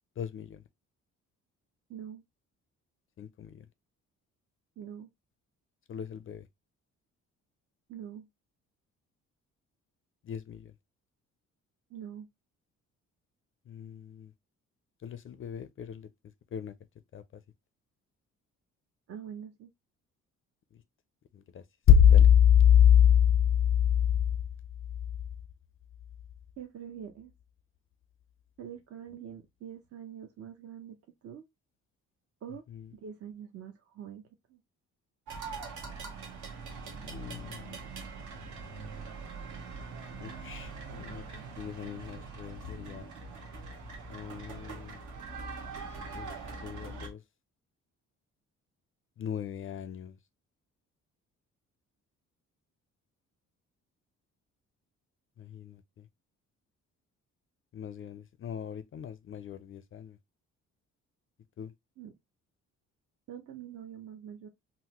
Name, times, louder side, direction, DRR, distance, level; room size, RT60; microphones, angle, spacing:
voice 1, 0.2-0.6 3.2-3.7 5.9-6.5 10.2-10.7 13.7-14.3 15.0-16.1 16.5-16.8 17.1-17.4 20.7-20.8 21.3-24.4 32.7-32.9 37.0-37.8 40.2-41.2 41.6-43.1 44.1-45.0 46.1-47.2 49.2-50.2 55.4-56.1 57.7-60.2 61.6-61.7, left 9 dB, 45° left, 0.4 m, -27 dB
voice 2, 1.9-2.2 4.8-5.1 7.9-8.3 11.9-12.3 19.1-19.7 26.6-27.3 28.6-31.0 31.2-31.4 32.4-32.6 32.9-34.6 62.0-62.1 63.3-64.5, right 9 dB, 50° right, 0.6 m, -44 dB
sound 1, 35.3-47.1, right 4 dB, 70° right, 1.1 m, -42 dB
3.7 x 2.0 x 2.8 m
cardioid pair, 90°, 30 cm